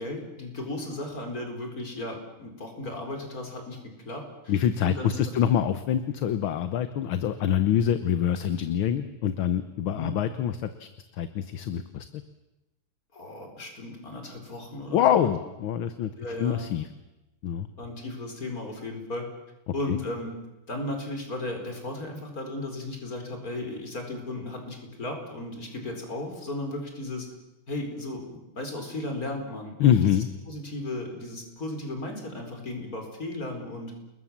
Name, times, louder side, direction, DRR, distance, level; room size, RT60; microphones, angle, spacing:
voice 1, 0.0-3.8 4.1-4.6 4.8-5.4 9.9-10.2 13.1-15.3 16.2-16.6 17.8-19.3 19.7-20.3 20.7-27.3 27.7-33.9, left 2 dB, 40° left, 3 dB, 5.2 m, -35 dB
voice 2, 4.5-12.1 14.9-16.1 16.4-16.9 17.4-17.7 19.9-20.0 29.8-30.3, left 9 dB, 70° left, 11 dB, 1.8 m, -25 dB
29.5 x 21.0 x 7.3 m, 0.99 s
omnidirectional pair, 2.4 m